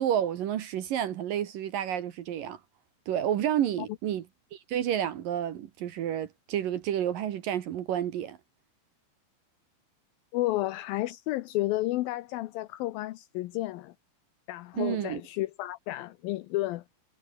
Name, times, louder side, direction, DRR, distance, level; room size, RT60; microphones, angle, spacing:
voice 1, 0.0-2.6 3.1-4.2 4.5-8.4 14.8-15.2, right 10 dB, 65° right, 2.6 m, -30 dB
voice 2, 10.3-13.9 14.5-16.8, left 17 dB, 80° left, 2.1 m, -31 dB
omnidirectional pair, 5.1 m